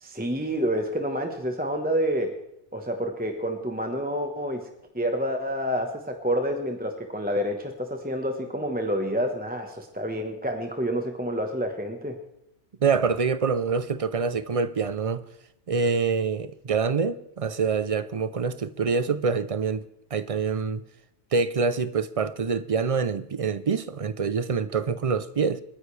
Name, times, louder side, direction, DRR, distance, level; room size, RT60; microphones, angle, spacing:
voice 1, 0.0-2.4 2.7-4.7 4.9-12.2, equal, 10° right, 1.1 m, -28 dB
voice 2, 12.8-15.2 15.7-19.8 20.1-20.8 21.3-25.6, right 5 dB, 45° right, 0.5 m, -26 dB
28.5 x 10.0 x 3.3 m
omnidirectional pair, 1.2 m